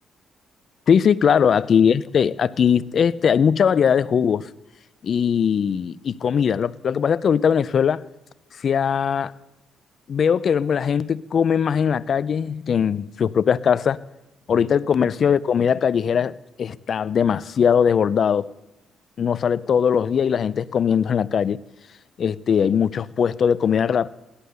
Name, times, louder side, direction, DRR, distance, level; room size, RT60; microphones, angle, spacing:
voice 1, 0.9-4.5 5.0-8.0 8.6-9.3 10.1-14.0 14.5-18.5 19.2-21.6 22.2-24.1, left 7 dB, 55° left, 0.5 m, -20 dB
17.0 x 11.5 x 6.7 m
cardioid pair, 90°, 0 cm